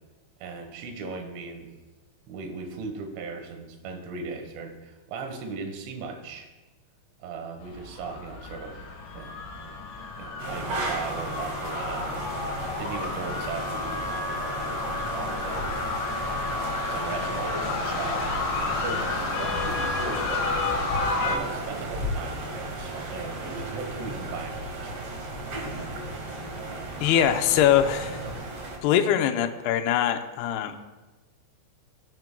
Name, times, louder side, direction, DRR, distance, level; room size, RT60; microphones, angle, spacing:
voice 1, 0.4-1.7 2.2-6.5 7.2-8.9 9.1-9.8 10.2-12.3 12.8-15.7 16.5-18.4 18.8-19.1 19.3-20.5 21.2-23.4 23.7-25.1, right 4 dB, 85° right, 5 dB, 3.8 m, -38 dB
sound 1, 7.6-21.4, left 3 dB, 65° left, 2.3 m, -31 dB
sound 2, 10.4-28.8, right 2 dB, 65° right, 1.6 m, -35 dB
sound 3, 14.9-23.6, left 2 dB, 15° right, 1.1 m, -39 dB
voice 2, 27.0-28.2 28.8-30.8, left 10 dB, 85° left, 6 dB, 2.3 m, -22 dB
18.5 x 10.5 x 2.2 m, 1.2 s
omnidirectional pair, 5.5 m